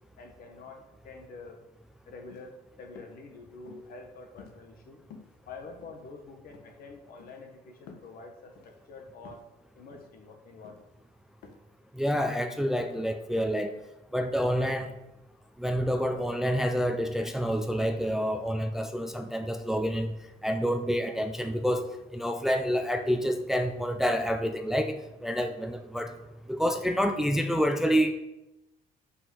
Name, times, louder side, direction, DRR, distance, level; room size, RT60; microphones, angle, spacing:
voice 1, 0.2-1.6 2.0-5.0 5.4-9.4 9.7-10.9, left 3 dB, 60° left, 3 dB, 1.6 m, -47 dB
sound 1, 2.3-2.5 3.0-3.2 3.6-4.0 4.4-4.8 5.1-5.4 5.8-6.2 6.5-6.7 7.2-7.4 7.9-8.1 8.6-8.8 9.2-9.5 9.9-10.2 10.6-10.9 11.4-11.5, left 5 dB, 80° left, 1.1 m, -51 dB
voice 2, 11.9-13.8 14.1-14.9 15.6-20.1 20.4-21.9 22.1-26.1 26.5-28.1, equal, ahead, 6 dB, 0.5 m, -28 dB
5.6 x 5.6 x 6.4 m, 0.93 s
cardioid pair, 110°, 17 cm